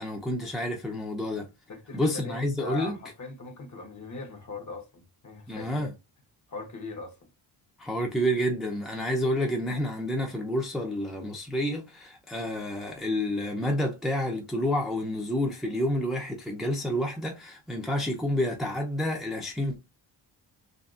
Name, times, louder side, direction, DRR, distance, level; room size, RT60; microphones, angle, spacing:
voice 1, 0.0-1.5 1.9-3.0 5.5-5.9 7.8-19.8, equal, ahead, 0.5 m, -29 dB
voice 2, 1.7-5.9 6.5-7.3, left 3 dB, 45° left, 0.9 m, -40 dB
2.8 x 2.6 x 2.4 m
cardioid pair, 105°, 42 cm